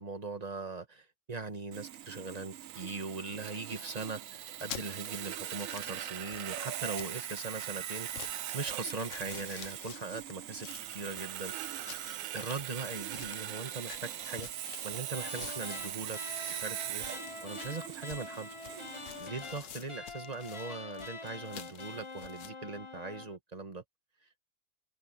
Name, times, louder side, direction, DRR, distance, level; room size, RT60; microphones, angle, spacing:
voice 1, 0.0-11.5 12.3-14.5 14.8-16.2 16.5-17.0 17.4-18.5 19.2-23.8, right 3 dB, 30° right, 1.8 m, -40 dB
Sawing, 1.7-19.2, right 12 dB, 90° right, 1.1 m, -41 dB
sound 1, 4.4-22.5, left 9 dB, 70° left, 1.3 m, -50 dB
sound 2, 15.1-23.4, left 3 dB, 25° left, 0.9 m, -45 dB
omnidirectional pair, 1.3 m